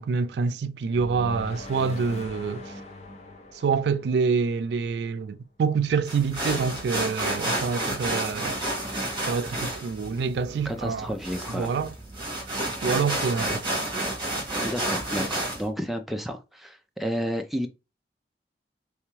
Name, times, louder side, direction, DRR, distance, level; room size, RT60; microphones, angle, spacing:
voice 1, 0.0-2.7 3.5-8.6 9.3-11.2 11.5-11.9 12.8-13.7, right 5 dB, 75° right, 0.3 m, -26 dB
sound 1, 0.9-5.0, left 2 dB, 40° left, 0.8 m, -41 dB
sound 2, 6.1-15.6, right 1 dB, 25° right, 1.5 m, -30 dB
voice 2, 10.7-11.7 14.6-17.7, equal, ahead, 0.4 m, -31 dB
3.4 x 3.3 x 3.1 m
head